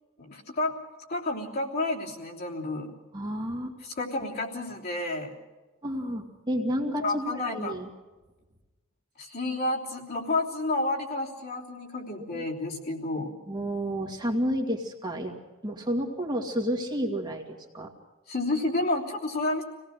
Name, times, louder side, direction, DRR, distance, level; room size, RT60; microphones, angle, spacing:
voice 1, 0.2-0.8 1.1-2.9 3.8-5.3 7.0-7.7 9.2-13.3 18.3-19.6, left 2 dB, 50° left, -2 dB, 3.3 m, -30 dB
voice 2, 3.1-3.7 5.8-7.9 12.3-12.5 13.5-17.9, equal, 20° right, 1 dB, 2.1 m, -31 dB
26.0 x 18.0 x 6.5 m, 1.2 s
head